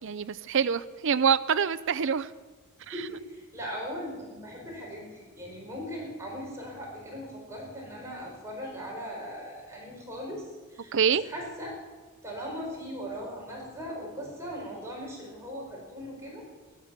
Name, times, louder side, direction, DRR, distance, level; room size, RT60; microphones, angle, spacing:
voice 1, 0.0-2.3 2.9-3.1 10.9-11.3, right 7 dB, 60° right, 14 dB, 0.5 m, -26 dB
voice 2, 2.7-10.9 11.2-11.7 12.2-16.5, equal, 15° right, -3 dB, 5.4 m, -39 dB
14.5 x 12.0 x 7.4 m, 1.3 s
head